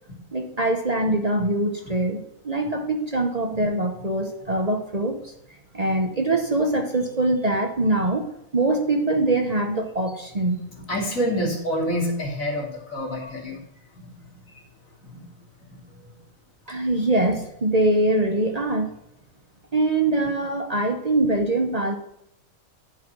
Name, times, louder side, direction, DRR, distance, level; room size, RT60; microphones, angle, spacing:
voice 1, 0.3-5.3 5.7-10.7 16.7-18.9 19.7-22.0, right 2 dB, 35° right, 4 dB, 0.9 m, -23 dB
voice 2, 10.7-13.6 14.0-14.1 15.0-15.2 15.7-15.9, equal, 75° left, -1 dB, 3.1 m, -28 dB
11.0 x 4.9 x 6.0 m, 0.80 s
omnidirectional pair, 1.4 m